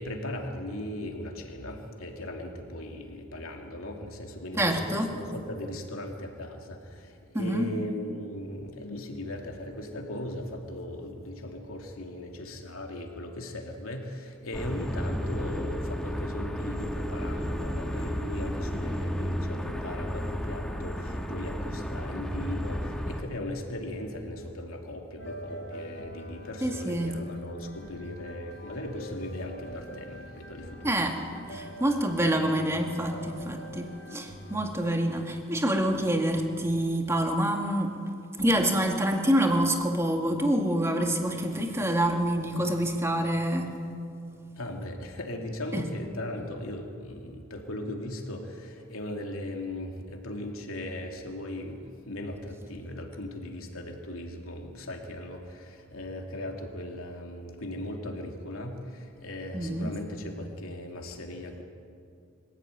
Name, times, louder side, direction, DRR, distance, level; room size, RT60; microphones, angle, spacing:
voice 1, 0.0-31.0 44.6-61.6, left 1 dB, 85° left, 2 dB, 3.0 m, -38 dB
voice 2, 4.6-5.1 7.3-7.7 26.6-27.2 30.8-31.2 31.5-37.9 38.4-43.8 45.7-45.8 59.5-59.9, right 1 dB, 15° right, 3 dB, 2.2 m, -27 dB
sound 1, 14.5-23.2, equal, 5° left, 1.6 m, -32 dB
sound 2, 25.2-34.8, left 1 dB, 55° left, 2.5 m, -44 dB
24.0 x 16.0 x 9.3 m, 2.4 s
head